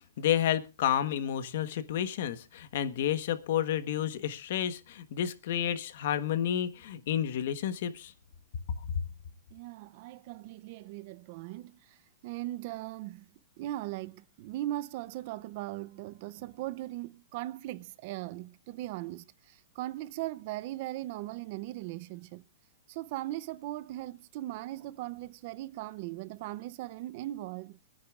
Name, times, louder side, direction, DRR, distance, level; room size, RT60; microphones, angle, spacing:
voice 1, 0.2-8.1, left 10 dB, 55° left, 1.2 m, -30 dB
voice 2, 9.5-12.0 12.2-13.3 13.6-22.4 22.9-27.8, right 15 dB, 40° right, 0.6 m, -39 dB
26.0 x 9.7 x 2.4 m
hypercardioid pair, 165°, 0 cm